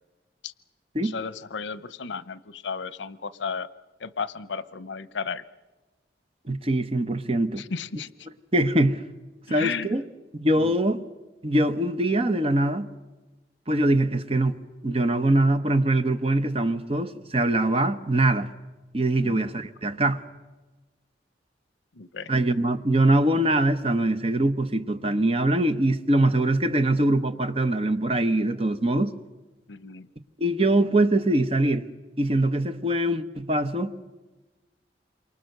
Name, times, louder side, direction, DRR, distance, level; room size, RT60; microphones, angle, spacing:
voice 1, 1.0-3.7 4.0-5.4 7.6-8.1 9.5-9.9 10.6-10.7 19.2-19.5 22.0-22.3 29.7-30.1, left 5 dB, 90° left, 0.8 m, -34 dB
voice 2, 6.5-7.6 8.5-9.0 9.5-10.0 10.3-11.0 11.4-12.9 13.7-14.6 14.8-18.5 18.9-20.2 22.3-29.1 30.4-31.9 32.2-33.9, right 1 dB, 30° right, 1.0 m, -23 dB
28.0 x 24.0 x 6.7 m
head